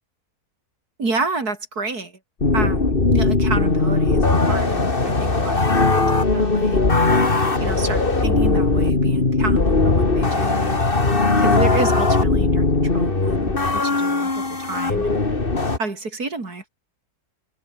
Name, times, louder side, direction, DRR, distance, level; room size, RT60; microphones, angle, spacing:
voice 1, 1.0-2.2 2.5-6.8 7.6-10.8 11.4-15.2 15.8-16.6, right 3 dB, 75° right, 4.6 m, -30 dB
sound 1, 2.4-15.8, left 3 dB, 35° left, 2.7 m, -19 dB
open air
omnidirectional pair, 1.6 m